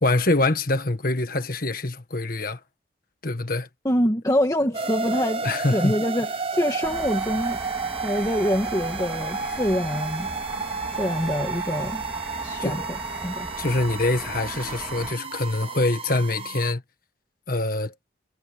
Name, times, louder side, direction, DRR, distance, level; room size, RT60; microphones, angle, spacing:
voice 1, 0.0-2.6 3.2-3.7 5.2-5.9 12.6-12.8 13.6-16.8 17.5-17.9, left 2 dB, 45° left, 1.6 m, -25 dB
voice 2, 3.8-5.4 5.7-7.6 8.0-10.3 10.9-12.0 12.4-12.8 13.2-13.5, equal, 15° left, 1.6 m, -25 dB
sound 1, 4.7-16.7, right 4 dB, 30° right, 0.7 m, -31 dB
sound 2, 6.3-8.5 9.6-16.6, left 1 dB, 75° left, 4.8 m, -55 dB
sound 3, 6.8-15.1, right 1 dB, 10° right, 2.1 m, -39 dB
head